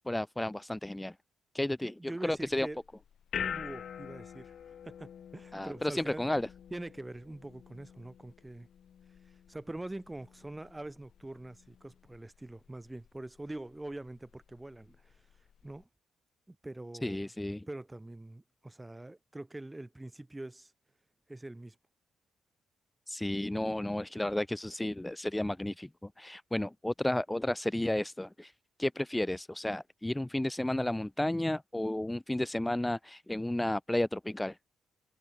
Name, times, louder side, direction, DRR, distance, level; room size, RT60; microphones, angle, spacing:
voice 1, 0.1-1.2 1.5-1.9 2.2-2.7 5.5-6.5 17.0-17.7 23.1-28.5 28.8-34.6, left 1 dB, 10° left, 2.2 m, -32 dB
voice 2, 1.8-2.8 3.4-6.3 6.7-8.7 9.5-15.3 15.6-15.9 16.5-17.3 17.7-20.7 21.3-21.8, right 2 dB, 10° right, 4.1 m, -44 dB
sound 1, 2.4-15.8, left 8 dB, 60° left, 1.8 m, -46 dB
cardioid pair, 90°, 0 cm